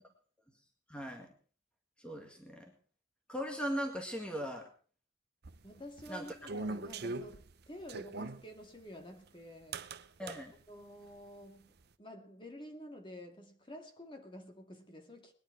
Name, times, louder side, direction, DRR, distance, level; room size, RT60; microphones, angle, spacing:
voice 1, 0.9-1.3 2.0-2.7 3.3-4.7 6.1-6.3 10.2-10.5, equal, 5° left, 2.0 m, -38 dB
sound 1, 5.4-8.4 9.7-10.4, right 3 dB, 55° right, 0.8 m, -41 dB
voice 2, 5.6-9.8 10.7-15.3, equal, 25° left, 2.3 m, -50 dB
20.0 x 11.0 x 4.7 m
head